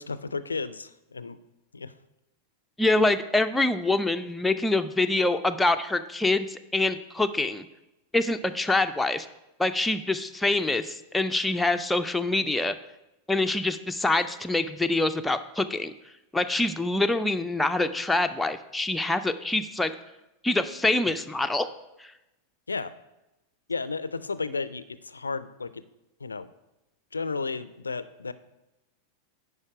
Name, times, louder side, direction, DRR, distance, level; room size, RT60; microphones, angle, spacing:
voice 1, 0.0-1.4 1.7-1.9 22.7-22.9 23.7-25.8 26.2-26.5 27.1-28.3, left 4 dB, 75° left, 15 dB, 0.3 m, -33 dB
voice 2, 2.8-7.7 8.1-9.3 9.6-12.8 13.3-15.9 16.3-19.9 20.4-21.7 22.0-22.1, left 2 dB, 5° left, 7 dB, 0.4 m, -25 dB
9.7 x 5.0 x 4.8 m, 0.94 s
figure-of-eight pair, 90°, 0 cm